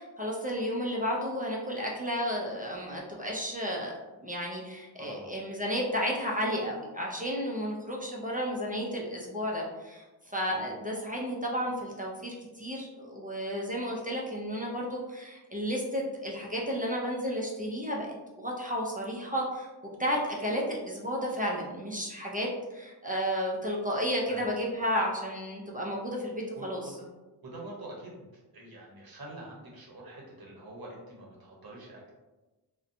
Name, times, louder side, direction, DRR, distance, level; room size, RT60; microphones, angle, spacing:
voice 1, 0.0-3.9 4.2-19.7 20.0-26.9, equal, 20° right, -3 dB, 0.3 m, -32 dB
voice 2, 5.0-5.3 10.2-10.7 24.3-24.6 26.5-27.1 27.4-28.3 28.5-32.1, right 1 dB, 55° right, -3 dB, 0.7 m, -45 dB
2.6 x 2.1 x 2.5 m, 1.1 s
wide cardioid pair, 115°, 44 cm